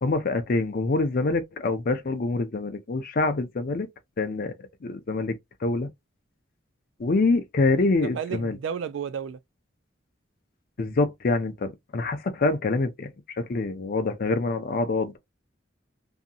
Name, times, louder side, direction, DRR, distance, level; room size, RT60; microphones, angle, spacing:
voice 1, 0.0-3.9 4.2-4.6 4.8-5.9 7.0-8.6 10.8-13.1 13.4-15.2, left 3 dB, 50° left, 0.5 m, -25 dB
voice 2, 7.8-9.4, right 7 dB, 80° right, 0.3 m, -33 dB
2.7 x 2.5 x 2.3 m
head